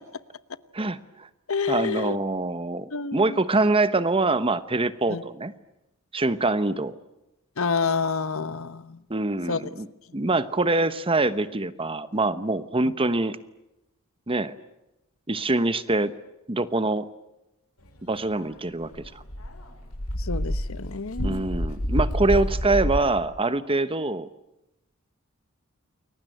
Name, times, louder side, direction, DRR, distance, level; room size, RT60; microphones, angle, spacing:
voice 1, 0.7-1.3 1.7-5.5 6.1-6.9 9.1-9.9 10.1-13.4 14.3-14.5 15.3-16.1 16.5-17.1 18.0-18.9 21.2-24.3, right 2 dB, 25° right, 14 dB, 1.1 m, -24 dB
voice 2, 1.5-2.2 2.9-3.4 5.1-5.2 7.6-9.0 9.5-9.6 20.2-21.5, left 5 dB, 70° left, 14 dB, 1.1 m, -28 dB
Dog, 18.4-18.5 18.8-23.0, equal, 85° left, 7.0 m, -28 dB
29.5 x 22.0 x 9.2 m, 0.94 s
head